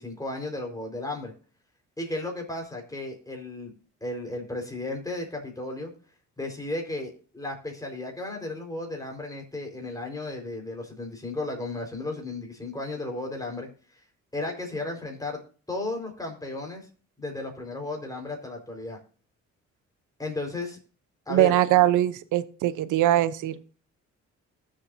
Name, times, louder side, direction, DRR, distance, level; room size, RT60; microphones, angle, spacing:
voice 1, 0.0-1.3 2.0-3.7 4.0-5.9 6.4-13.7 14.3-15.4 15.7-16.9 17.2-19.0 20.2-20.8 21.3-21.6, left 2 dB, 10° left, 1 dB, 4.5 m, -34 dB
voice 2, 21.3-23.6, right 14 dB, 85° right, 15 dB, 0.8 m, -22 dB
20.0 x 7.6 x 2.7 m, 0.40 s
cardioid pair, 90°, 30 cm